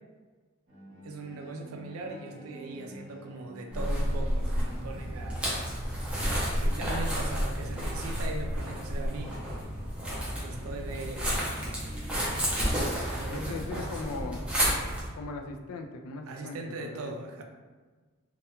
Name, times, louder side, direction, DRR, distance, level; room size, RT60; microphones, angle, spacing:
Bowed string instrument, 0.7-5.6, right 2 dB, 45° right, 0.8 m, -49 dB
voice 1, 1.0-5.5 6.6-9.4 10.4-11.5 13.1-14.3 16.3-17.4, right 2 dB, 70° right, 3 dB, 0.4 m, -40 dB
sound 1, 3.7-15.1, equal, 5° right, 0.5 m, -31 dB
voice 2, 13.3-14.4 15.1-17.2, left 3 dB, 75° left, 5 dB, 0.3 m, -39 dB
2.3 x 2.2 x 2.8 m, 1.4 s
head